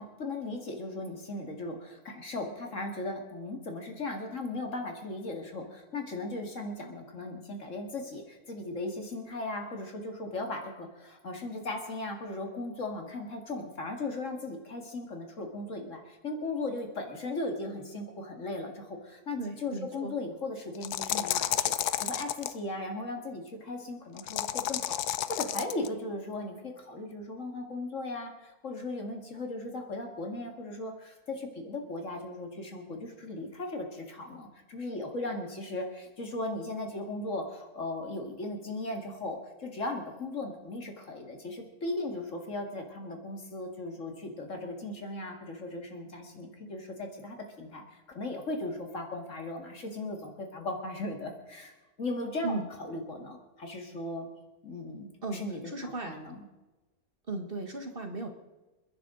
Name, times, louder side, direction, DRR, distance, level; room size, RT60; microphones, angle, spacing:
voice 1, 0.0-51.7 52.0-52.6 52.9-54.3 54.6-56.4, left 2 dB, 55° left, 3 dB, 2.5 m, -37 dB
voice 2, 19.4-20.1 52.4-52.7 55.2-56.2 57.3-58.3, right 2 dB, 40° right, 5 dB, 1.5 m, -36 dB
sound 1, 20.8-22.5 24.2-25.9, left 12 dB, 90° left, 1.2 m, -31 dB
28.5 x 10.5 x 3.9 m, 1.1 s
omnidirectional pair, 1.6 m